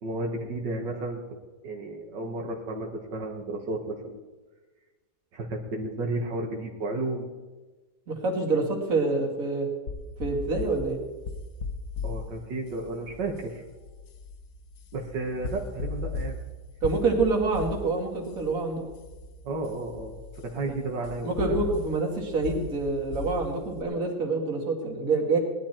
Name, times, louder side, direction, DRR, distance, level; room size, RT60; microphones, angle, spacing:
voice 1, 0.0-1.2 1.6-4.2 5.3-7.3 12.0-13.6 14.9-16.4 19.4-21.6, right 2 dB, 85° right, 1 dB, 2.1 m, -33 dB
voice 2, 8.1-9.7 10.2-11.0 16.8-18.8 20.7-20.8 21.2-25.4, right 3 dB, 50° right, 0 dB, 2.6 m, -26 dB
sound 1, 9.9-23.8, left 3 dB, 60° left, 1.4 m, -38 dB
18.5 x 11.5 x 4.4 m, 1.2 s
omnidirectional pair, 1.9 m